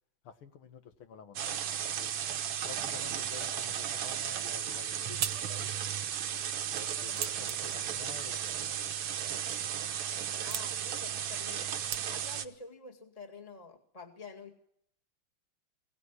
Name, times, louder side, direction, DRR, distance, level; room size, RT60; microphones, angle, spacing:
voice 1, 0.2-2.1 2.6-5.7 6.7-8.9, left 6 dB, 85° left, 8 dB, 2.4 m, -50 dB
sound 1, 1.4-12.5, right 9 dB, 85° right, 2.0 m, -35 dB
sound 2, 4.5-12.5, right 8 dB, 65° right, 1.8 m, -44 dB
voice 2, 10.3-11.7 12.1-14.6, left 4 dB, 15° left, 2 dB, 2.1 m, -48 dB
23.0 x 17.0 x 9.8 m, 0.72 s
omnidirectional pair, 2.3 m